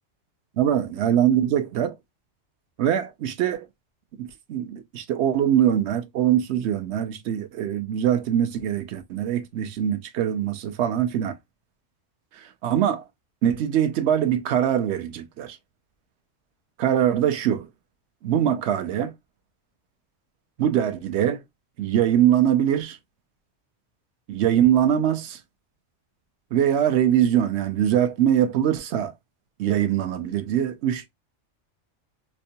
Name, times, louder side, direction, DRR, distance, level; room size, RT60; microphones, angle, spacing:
voice 1, 0.6-1.9 2.8-3.7 4.2-11.4 12.4-13.0 13.4-15.6 16.8-17.7 18.2-19.1 20.6-21.4 21.8-23.0 24.3-25.4 26.5-29.1 29.6-31.1, right 10 dB, 70° right, 0.8 m, -22 dB
4.4 x 2.1 x 2.6 m
omnidirectional pair, 1.3 m